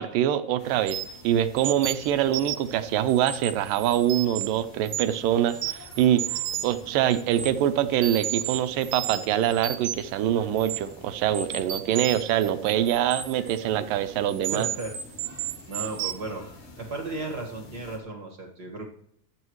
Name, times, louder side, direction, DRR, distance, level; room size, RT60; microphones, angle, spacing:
voice 1, 0.0-6.2 6.6-14.7, right 11 dB, 85° right, 11 dB, 2.5 m, -24 dB
sound 1, 0.6-18.0, left 2 dB, 70° left, 4.6 m, -49 dB
sound 2, 0.9-1.2 1.6-2.7 3.1-4.5 4.9-5.2 5.5-6.8 7.1-7.5 8.0-10.1 10.6-10.8 11.3-13.6 14.3-16.1, right 10 dB, 60° right, 1.8 m, -33 dB
voice 2, 14.5-14.9 15.7-16.5 16.8-18.8, right 3 dB, 35° right, 0 dB, 1.7 m, -34 dB
25.0 x 9.3 x 3.2 m, 0.71 s
omnidirectional pair, 3.9 m